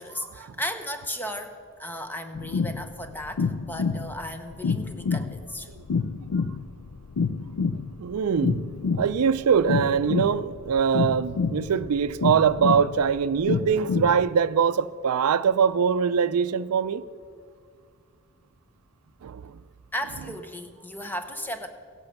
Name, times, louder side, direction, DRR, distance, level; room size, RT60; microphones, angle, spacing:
voice 1, 0.0-5.7 19.9-21.7, equal, 10° left, 0.8 m, -35 dB
sound 1, 2.3-14.3, left 5 dB, 75° left, 0.4 m, -28 dB
voice 2, 8.0-8.6 9.0-17.0 19.2-19.5, right 7 dB, 80° right, 0.4 m, -23 dB
16.0 x 8.3 x 6.6 m
head